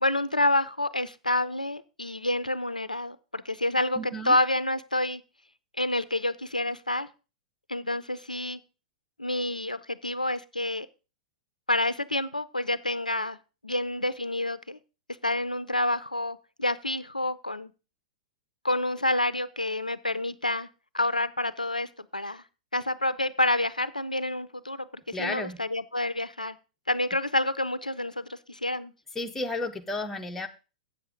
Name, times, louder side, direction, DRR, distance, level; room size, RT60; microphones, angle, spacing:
voice 1, 0.0-4.0 4.3-5.2 5.8-7.1 7.7-8.6 9.2-10.9 11.7-13.4 13.6-14.8 15.2-17.7 18.6-20.7 20.9-22.4 22.7-26.5 26.9-28.9, left 1 dB, 85° left, 16 dB, 0.4 m, -28 dB
voice 2, 4.0-4.3 25.1-25.6 29.1-30.5, left 2 dB, 10° left, 4 dB, 0.9 m, -32 dB
8.2 x 7.1 x 5.0 m, 0.32 s
figure-of-eight pair, 100°, 4 cm